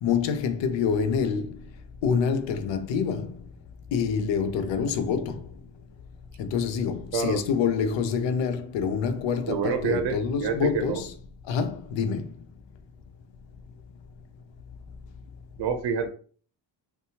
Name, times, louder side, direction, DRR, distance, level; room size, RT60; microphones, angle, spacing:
voice 1, 0.0-1.6 2.0-3.4 3.9-5.5 6.4-11.1 11.5-12.3, left 6 dB, 80° left, 0.6 m, -26 dB
voice 2, 9.5-11.0 15.6-16.1, right 6 dB, 65° right, 0.6 m, -27 dB
2.7 x 2.3 x 2.7 m
cardioid pair, 80°, 44 cm